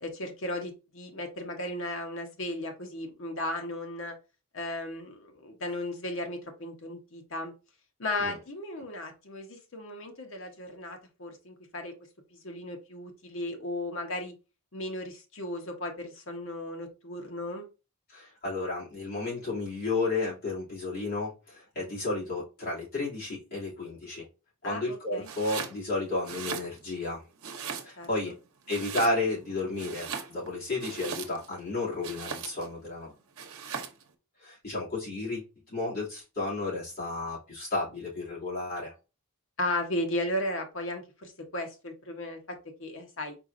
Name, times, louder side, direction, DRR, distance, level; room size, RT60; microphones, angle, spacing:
voice 1, 0.0-4.2 4.5-7.5 8.0-11.9 12.3-14.3 14.7-17.7 24.6-25.3 28.0-28.3 39.6-43.4, left 1 dB, 65° left, 4 dB, 1.0 m, -35 dB
voice 2, 18.1-24.2 24.6-27.2 27.8-28.4 28.7-33.1 34.4-38.9, left 2 dB, 45° left, -7 dB, 2.7 m, -32 dB
Domestic sounds home sounds, 25.2-25.8 26.2-27.1 27.4-28.2 28.7-29.4 29.7-31.6 32.0-32.7 33.4-34.0, right 6 dB, 85° right, 0.8 m, -38 dB
4.4 x 4.2 x 2.6 m, 0.30 s
head